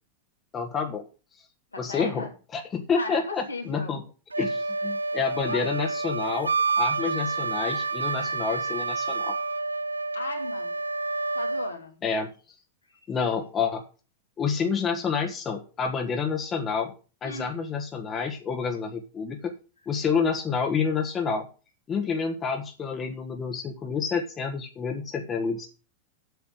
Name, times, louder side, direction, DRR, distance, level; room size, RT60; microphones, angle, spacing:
voice 1, 0.5-1.1 1.8-2.3 2.5-4.0 4.4-6.5 6.8-9.3 12.0-12.3 13.1-13.8 14.4-16.9 17.2-19.5 19.9-21.5 21.9-25.7, left 5 dB, 25° left, 1.4 m, -28 dB
voice 2, 1.7-2.3 2.9-3.9 5.5-5.7 10.1-10.7 11.3-12.0 12.9-13.0 17.2-17.6, left 2 dB, 80° left, 2.5 m, -36 dB
Wind instrument woodwind instrument, 4.3-11.7, right 3 dB, 80° right, 0.4 m, -28 dB
8.2 x 6.9 x 7.8 m
figure-of-eight pair, 90°, 0 cm